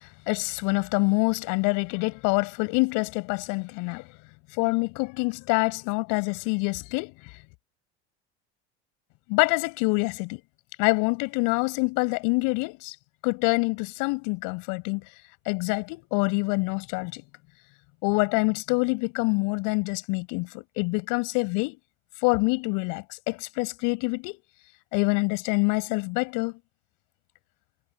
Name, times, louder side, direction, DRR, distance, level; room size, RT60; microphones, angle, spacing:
voice 1, 0.3-4.0 4.6-7.1 9.3-10.4 10.8-12.9 13.2-15.0 15.5-17.2 18.0-21.8 22.2-24.4 24.9-26.5, left 30 dB, 65° left, 7.7 m, -26 dB
hypercardioid pair, 80°, 34 cm